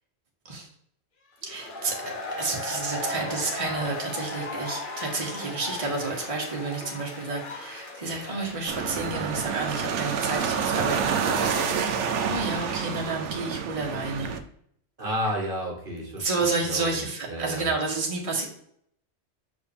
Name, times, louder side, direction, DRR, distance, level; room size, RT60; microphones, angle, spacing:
sound 1, 1.4-13.1, left 2 dB, 50° left, 1.1 m, -38 dB
voice 1, 1.4-1.9 2.4-14.3 16.2-18.4, right 3 dB, 30° right, -2 dB, 1.3 m, -30 dB
sound 2, 8.7-14.4, right 6 dB, 80° right, 1.0 m, -28 dB
voice 2, 15.0-16.3 16.6-16.9 17.3-17.7, equal, 50° right, 0 dB, 1.4 m, -31 dB
6.3 x 4.7 x 3.4 m, 0.67 s
omnidirectional pair, 1.2 m